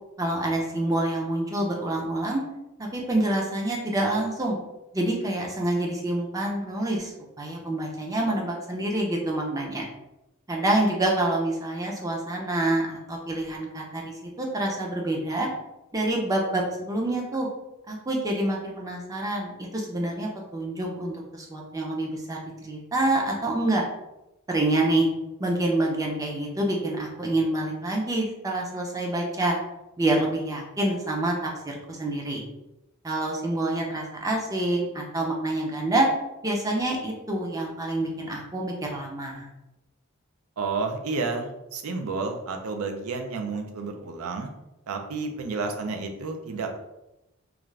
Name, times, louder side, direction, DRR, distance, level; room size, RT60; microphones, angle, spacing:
voice 1, 0.2-2.4 2.8-4.6 4.9-9.8 10.5-15.5 15.9-17.5 17.9-22.4 22.6-23.8 24.5-25.1 25.4-29.6 30.0-31.3 31.6-32.4 33.0-36.1 36.4-39.5, right 1 dB, 15° right, 0 dB, 0.5 m, -27 dB
voice 2, 40.6-44.5 44.9-46.8, right 4 dB, 80° right, 4 dB, 0.4 m, -31 dB
2.4 x 2.4 x 3.1 m, 0.95 s
head